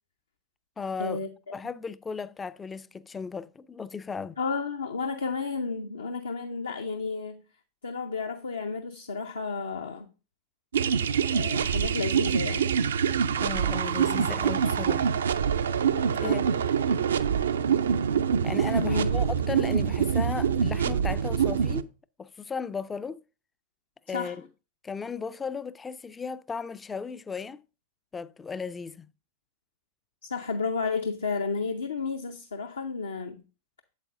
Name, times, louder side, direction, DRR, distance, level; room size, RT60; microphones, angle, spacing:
voice 1, 0.8-1.2 1.5-4.4 13.4-15.1 16.2-16.4 18.4-21.9 22.2-23.2 24.1-24.5 24.8-27.6 28.1-29.1, left 5 dB, 15° left, 0.3 m, -36 dB
voice 2, 4.4-7.4 7.8-10.1 11.3-12.7 16.2-16.5 18.8-19.2 24.1-24.4 30.2-33.4, left 4 dB, 70° left, 0.6 m, -32 dB
sound 1, 10.7-21.8, right 7 dB, 65° right, 0.3 m, -25 dB
8.2 x 7.7 x 2.5 m
figure-of-eight pair, 90°, 0 cm